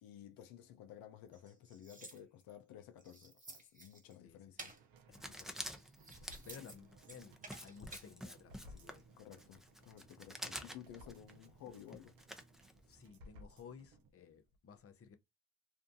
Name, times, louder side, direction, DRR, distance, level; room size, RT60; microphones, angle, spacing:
voice 1, 0.0-4.7 6.2-6.7 9.2-12.2, left 10 dB, 80° left, 0.5 m, -55 dB
sound 1, 1.3-2.6 3.0-4.2 4.6-4.8 5.5-6.8 7.0-8.1, right 2 dB, 25° right, 1.0 m, -54 dB
voice 2, 4.2-4.7 5.1-5.9 6.4-9.0 12.9-15.2, left 6 dB, 40° left, 0.7 m, -56 dB
sound 2, 4.7-14.1 14.5-14.6, equal, 85° right, 0.6 m, -61 dB
Writing, 5.1-13.1, equal, ahead, 0.6 m, -49 dB
2.6 x 2.2 x 2.6 m
supercardioid pair, 60°, 34 cm